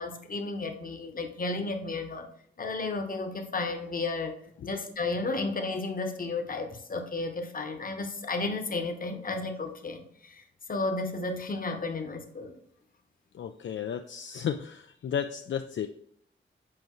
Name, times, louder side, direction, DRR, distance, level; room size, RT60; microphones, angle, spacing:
voice 1, 0.0-2.3 2.6-4.3 4.6-10.4 10.7-12.6, left 3 dB, 45° left, 6 dB, 1.0 m, -33 dB
voice 2, 13.3-15.9, left 8 dB, 70° left, 7 dB, 0.4 m, -33 dB
7.8 x 5.2 x 3.0 m, 0.67 s
wide cardioid pair, 145°, 20 cm